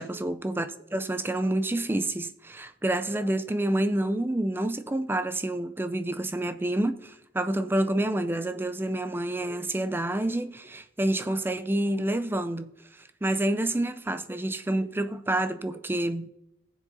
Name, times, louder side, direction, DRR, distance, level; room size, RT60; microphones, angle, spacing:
voice 1, 0.0-12.7 13.2-16.3, right 1 dB, 10° right, 0.4 m, -28 dB
19.5 x 7.4 x 2.7 m
head